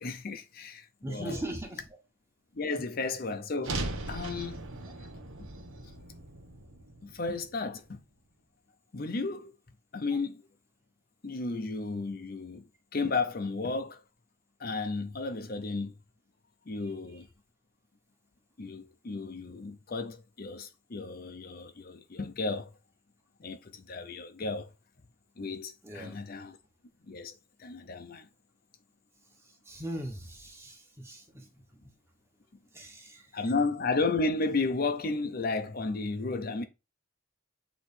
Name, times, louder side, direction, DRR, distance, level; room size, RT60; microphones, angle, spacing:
voice 1, 0.0-1.4 2.5-4.7 7.0-8.0 8.9-9.5 9.9-10.4 11.2-12.7 12.9-14.0 14.6-15.9 16.7-17.3 18.6-22.7 23.4-24.7 25.4-26.6 27.1-27.3 27.6-28.3 33.3-36.6, left 3 dB, 45° left, 0.6 m, -33 dB
voice 2, 1.0-1.8 25.8-26.2 29.7-31.5 31.8-31.9 32.7-33.2, right 1 dB, 10° right, 1.2 m, -39 dB
sound 1, 3.6-7.9, right 2 dB, 80° right, 1.2 m, -39 dB
7.9 x 3.1 x 4.3 m
head